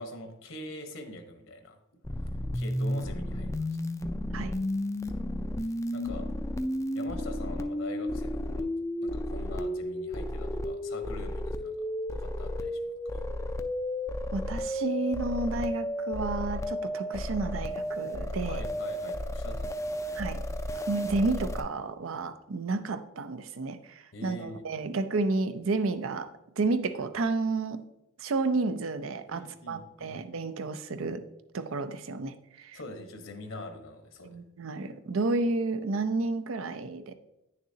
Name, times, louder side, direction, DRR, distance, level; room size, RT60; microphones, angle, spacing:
voice 1, 0.0-1.8 2.5-3.8 5.9-6.3 6.9-8.7 9.0-11.9 12.1-13.3 18.5-20.2 24.1-24.6 29.3-30.2 32.7-34.4, left 1 dB, 70° left, 6 dB, 1.0 m, -43 dB
sound 1, 2.0-21.6, left 1 dB, 15° left, 0.3 m, -33 dB
voice 2, 14.3-18.6 20.1-20.4 20.7-27.8 28.2-31.2 31.5-32.8 34.2-37.1, right 3 dB, 80° right, 10 dB, 0.5 m, -31 dB
9.3 x 6.7 x 2.8 m, 0.89 s
head